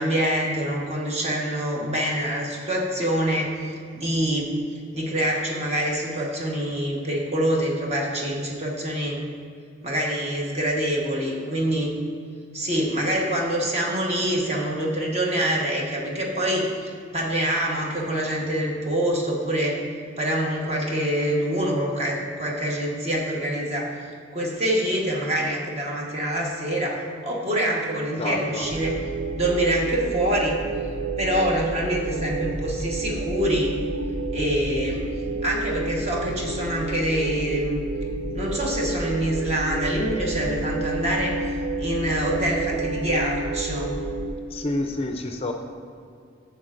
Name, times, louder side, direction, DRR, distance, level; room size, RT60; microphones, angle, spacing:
voice 1, 0.0-4.5 4.9-9.2 9.8-11.9 12.5-19.8 20.2-23.9 24.3-28.9 29.3-30.6 31.2-33.7 34.3-35.0 35.4-37.8 38.3-41.4 41.8-44.1, right 1 dB, 35° right, -2 dB, 1.2 m, -25 dB
voice 2, 28.2-28.7 44.5-45.5, left 2 dB, 30° left, 4 dB, 0.4 m, -28 dB
sound 1, 28.6-44.3, right 2 dB, 85° right, 0.5 m, -30 dB
11.5 x 6.9 x 2.5 m, 2.3 s
head